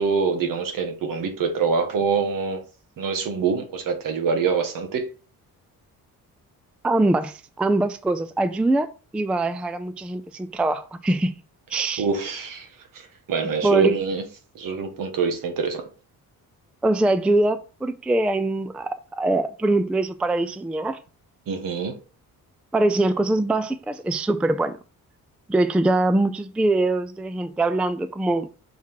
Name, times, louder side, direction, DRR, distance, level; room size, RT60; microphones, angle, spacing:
voice 1, 0.0-2.6 3.0-5.1 12.0-12.7 12.9-13.0 13.3-14.2 14.5-15.8 21.5-22.0, right 5 dB, 65° right, 1.5 m, -25 dB
voice 2, 6.8-8.9 9.1-11.3 11.7-12.1 13.6-14.0 16.8-21.0 22.7-24.8 25.5-28.5, right 2 dB, 5° right, 0.3 m, -23 dB
5.8 x 3.6 x 4.6 m
cardioid pair, 135°, 35 cm